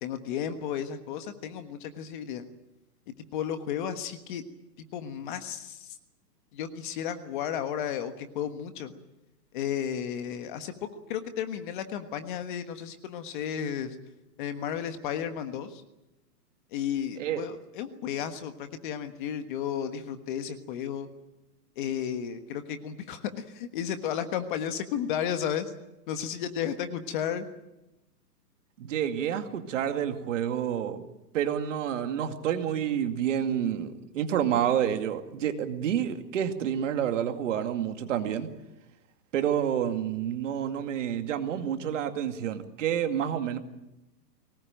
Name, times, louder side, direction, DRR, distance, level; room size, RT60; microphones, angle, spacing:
voice 1, 0.0-2.4 3.3-4.4 4.9-5.9 6.5-8.9 9.5-10.7 11.1-13.9 14.4-15.8 16.7-21.1 21.8-25.7 26.1-27.4, left 9 dB, 30° left, 8 dB, 1.4 m, -33 dB
voice 2, 28.8-31.0 31.3-38.5 39.3-43.6, right 9 dB, 45° right, 7 dB, 2.4 m, -29 dB
23.5 x 19.0 x 9.0 m, 0.94 s
hypercardioid pair, 160°, 49 cm